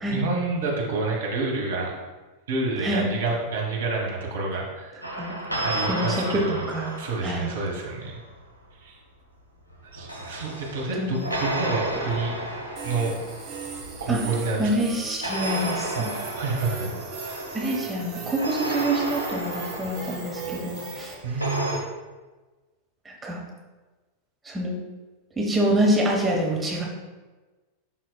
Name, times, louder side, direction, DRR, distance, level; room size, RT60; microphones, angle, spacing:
voice 1, 0.1-1.9 2.5-5.0 5.6-6.6 7.0-8.2 8.8-9.0 9.9-12.4 12.8-13.1 14.0-14.7 15.9-16.9 21.2-21.7, right 3 dB, 60° right, -1 dB, 1.5 m, -28 dB
sound 1, 5.0-8.2 9.7-14.6 15.2-21.8, right 1 dB, 80° left, 1.1 m, -33 dB
voice 2, 5.8-7.0 7.2-7.5 11.0-11.4 14.1-14.2 14.6-16.1 17.5-21.2 23.0-23.4 24.4-24.8 25.4-26.9, right 1 dB, 10° right, -2 dB, 1.1 m, -26 dB
sound 2, 12.8-21.1, right 5 dB, 35° right, 1.6 m, -38 dB
11.0 x 4.2 x 2.3 m, 1.2 s
figure-of-eight pair, 90°, 0 cm